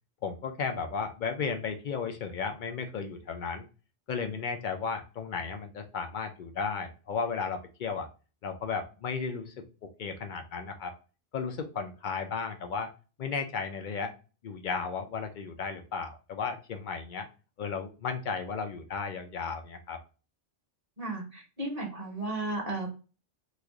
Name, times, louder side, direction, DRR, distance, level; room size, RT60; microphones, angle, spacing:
voice 1, 0.2-3.7 4.1-8.1 8.4-9.5 10.0-10.9 11.3-12.9 13.2-14.1 14.4-17.3 17.6-20.0, left 5 dB, 60° left, 6 dB, 0.5 m, -34 dB
voice 2, 21.0-22.9, right 2 dB, 35° right, 0 dB, 1.1 m, -34 dB
3.1 x 2.4 x 3.5 m, 0.34 s
omnidirectional pair, 1.3 m